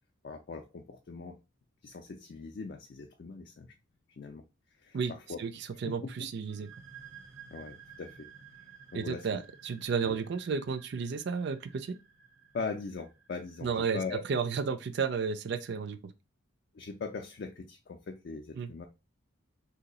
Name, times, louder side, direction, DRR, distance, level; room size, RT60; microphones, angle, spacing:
voice 1, 0.2-1.4 1.8-3.7 4.2-4.4 4.8-5.4 6.0-6.1 7.5-8.3 8.9-9.3 10.0-10.2 12.5-14.2 16.7-18.9, left 4 dB, 50° left, 0.4 m, -40 dB
voice 2, 5.8-6.7 8.9-12.0 13.6-14.0 14.3-16.1 18.6-18.7, right 5 dB, 55° right, 0.4 m, -32 dB
sound 1, 6.5-13.9, right 7 dB, 90° right, 1.1 m, -54 dB
2.8 x 2.3 x 3.8 m
head